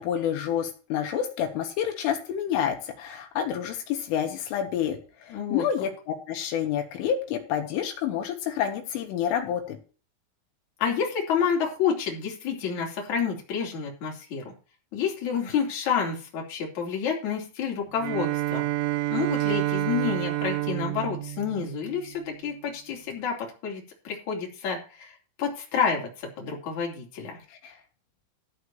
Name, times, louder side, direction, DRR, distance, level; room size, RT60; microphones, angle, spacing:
voice 1, 0.0-9.8 27.6-27.7, left 9 dB, 80° left, 3 dB, 4.0 m, -29 dB
voice 2, 5.3-5.7 10.8-14.5 14.9-18.7 19.1-27.4, left 7 dB, 40° left, -1 dB, 3.8 m, -29 dB
Bowed string instrument, 18.0-22.4, right 16 dB, 80° right, 2.8 m, -29 dB
13.5 x 4.9 x 7.1 m, 0.36 s
omnidirectional pair, 5.8 m